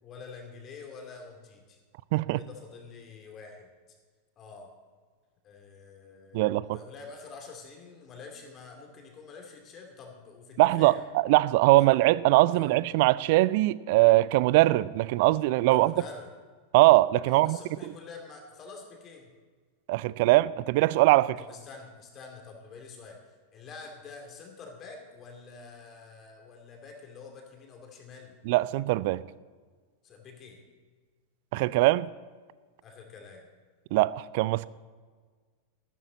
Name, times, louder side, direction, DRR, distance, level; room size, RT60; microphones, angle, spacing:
voice 1, 0.0-1.8 2.4-3.7 4.4-4.7 5.4-11.0 11.8-11.9 12.5-12.7 15.7-16.3 17.2-19.3 21.4-28.4 30.0-30.6 32.8-33.5, left 4 dB, 30° left, 3 dB, 2.6 m, -47 dB
voice 2, 6.3-6.8 10.6-15.9 16.7-17.6 19.9-21.4 28.5-29.2 31.5-32.1 33.9-34.7, right 19 dB, 50° right, 20 dB, 0.4 m, -22 dB
14.0 x 13.0 x 4.1 m, 1.5 s
figure-of-eight pair, 90°, 0 cm